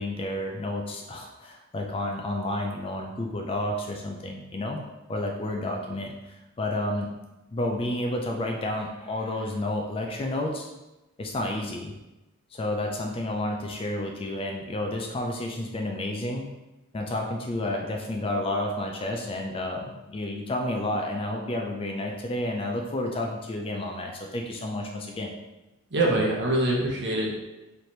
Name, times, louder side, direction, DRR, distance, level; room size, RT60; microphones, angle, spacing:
voice 1, 0.0-4.8 5.1-7.1 7.5-10.7 11.2-11.9 12.5-16.5 16.9-25.3, left 1 dB, 25° left, 2 dB, 0.3 m, -30 dB
voice 2, 25.9-27.4, right 1 dB, 50° right, -3 dB, 0.9 m, -24 dB
3.2 x 2.9 x 4.2 m, 1.0 s
head